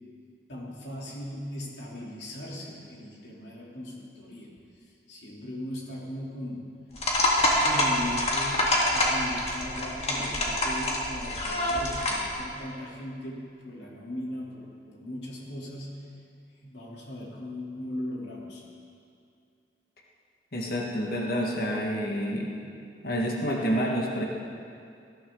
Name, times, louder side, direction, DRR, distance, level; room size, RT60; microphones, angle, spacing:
voice 1, 0.5-4.5 5.1-6.7 7.6-8.7 8.9-16.1 16.6-18.6, left 1 dB, 80° left, -4 dB, 3.1 m, -38 dB
sound 1, 7.0-12.3, left 1 dB, 35° left, 2.0 m, -26 dB
voice 2, 20.5-22.5 23.0-24.2, equal, 55° left, -1 dB, 1.6 m, -28 dB
18.5 x 12.5 x 3.8 m, 2.4 s
head